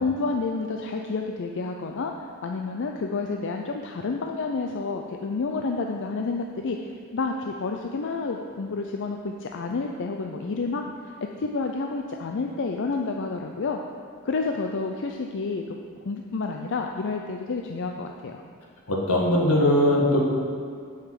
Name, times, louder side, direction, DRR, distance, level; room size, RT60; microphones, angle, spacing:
voice 1, 0.0-13.8 14.2-15.8 16.0-18.4, left 4 dB, 55° left, 3 dB, 0.5 m, -29 dB
voice 2, 18.9-20.2, left 1 dB, 80° left, -1 dB, 1.7 m, -20 dB
8.0 x 5.8 x 7.5 m, 2.2 s
head